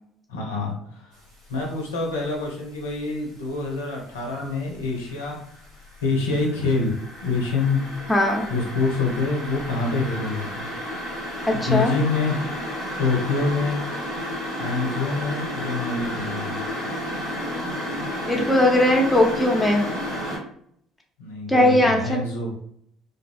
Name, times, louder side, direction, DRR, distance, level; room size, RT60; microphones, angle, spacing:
voice 1, 0.3-1.2 1.5-5.4 6.0-7.8 8.5-10.7 11.5-12.4 13.0-13.8 14.5-16.6 21.2-22.5, left 3 dB, 85° left, -1 dB, 0.5 m, -26 dB
sound 1, 1.3-1.7 2.1-3.6 4.0-20.4, equal, 90° right, 1.2 m, -32 dB
voice 2, 8.1-8.4 11.5-11.9 18.2-19.9 21.5-22.2, left 1 dB, 10° left, 1 dB, 0.6 m, -19 dB
2.4 x 2.0 x 2.5 m, 0.66 s
hypercardioid pair, 55°, 0 cm